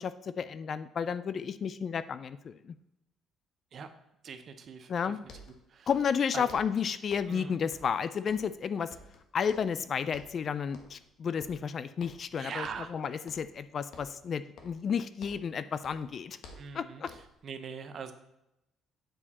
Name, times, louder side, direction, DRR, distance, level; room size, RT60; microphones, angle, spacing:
voice 1, 0.0-2.8 4.9-5.2 5.9-8.9 9.3-16.4 16.7-17.1, left 7 dB, 40° left, 14 dB, 0.3 m, -32 dB
voice 2, 4.2-4.9 5.2-5.3 5.7-5.9 6.3-6.5 7.3-7.6 12.4-12.9 16.6-17.0 17.4-18.1, right 6 dB, 45° right, 9 dB, 0.7 m, -41 dB
sound 1, 5.2-6.2 6.5-7.4 7.7-8.6 8.9-9.8 10.1-10.4 10.7-11.1 11.4-12.3 12.6-13.0 13.3-13.6 13.9-15.6 15.8-17.4, left 3 dB, 70° left, 1.2 m, -53 dB
8.8 x 4.9 x 4.1 m, 0.85 s
cardioid pair, 145°, 0 cm